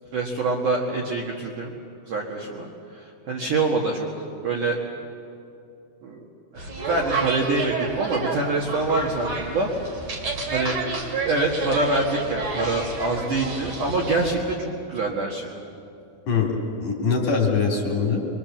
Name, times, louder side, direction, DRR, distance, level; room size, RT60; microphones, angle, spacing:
voice 1, 0.1-1.7 2.1-2.7 3.3-4.1 4.4-4.8 6.0-6.2 6.5-9.7 10.5-10.8 11.2-15.5, right 3 dB, 55° right, -2 dB, 2.6 m, -25 dB
sound 1, 6.6-14.4, right 3 dB, 40° right, 3.3 m, -30 dB
voice 2, 16.3-18.3, left 5 dB, 45° left, -1 dB, 3.7 m, -23 dB
25.5 x 23.0 x 7.4 m, 2.6 s
omnidirectional pair, 5.5 m